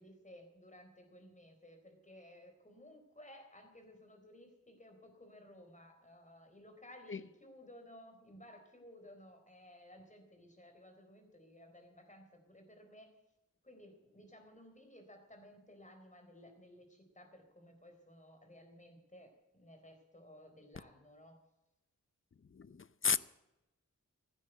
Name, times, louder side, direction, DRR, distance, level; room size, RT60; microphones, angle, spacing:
voice 1, 0.0-13.1 13.6-21.4, left 1 dB, 25° left, 4.0 m, -57 dB
voice 2, 22.5-23.2, left 6 dB, 40° left, 0.6 m, -33 dB
15.5 x 9.9 x 7.9 m
wide cardioid pair, 80°, 30 cm